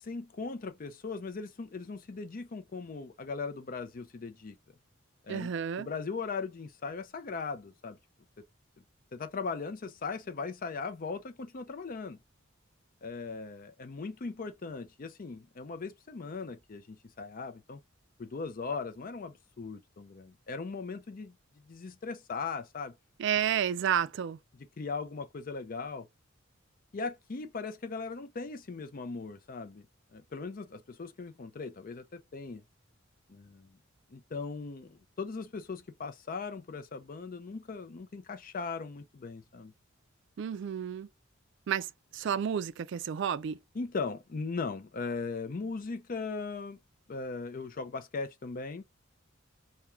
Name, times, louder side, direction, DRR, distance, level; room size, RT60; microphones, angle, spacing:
voice 1, 0.0-4.6 5.2-8.0 9.1-12.2 13.0-17.8 18.2-21.4 21.6-23.0 24.5-26.1 26.9-29.9 30.1-32.6 33.3-33.8 34.1-39.7 43.7-46.8 47.1-48.8, left 4 dB, 40° left, 0.5 m, -39 dB
voice 2, 5.3-5.9 23.2-24.4 40.4-41.1 41.7-41.9 42.1-43.6, right 8 dB, 60° right, 0.3 m, -31 dB
3.5 x 2.2 x 4.3 m
head